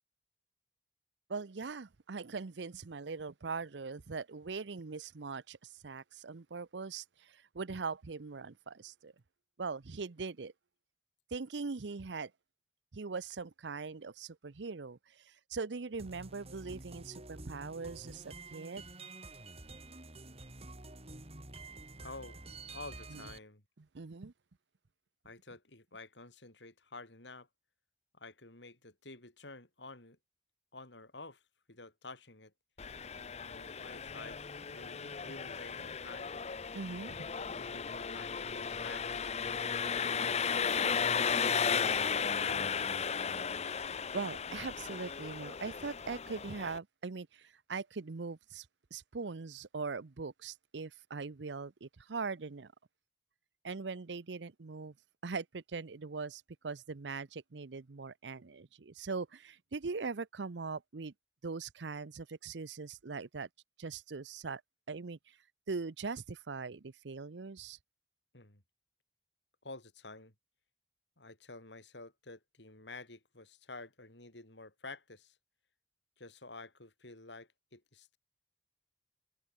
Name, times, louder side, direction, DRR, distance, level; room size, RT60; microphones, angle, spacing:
voice 1, 1.3-9.1 9.6-10.5 11.3-12.3 12.9-18.8 23.1-23.3 23.8-24.3 36.7-37.3 44.1-48.7 48.9-52.7 53.6-54.9 55.2-61.1 61.4-63.5 63.8-64.6 64.9-65.4 65.7-67.8, right 4 dB, 85° right, 0.7 m, -41 dB
sound 1, 16.0-23.4, right 2 dB, 35° right, 4.1 m, -49 dB
voice 2, 22.0-22.4 22.7-23.6 25.2-27.5 28.1-30.2 30.7-31.4 31.7-32.5 33.4-36.3 37.4-39.2 40.1-42.7 68.3-68.6 69.6-70.3 71.2-75.4 76.2-78.2, left 3 dB, 80° left, 5.8 m, -50 dB
Engine, 32.8-46.8, left 6 dB, 40° left, 0.7 m, -35 dB
open air
head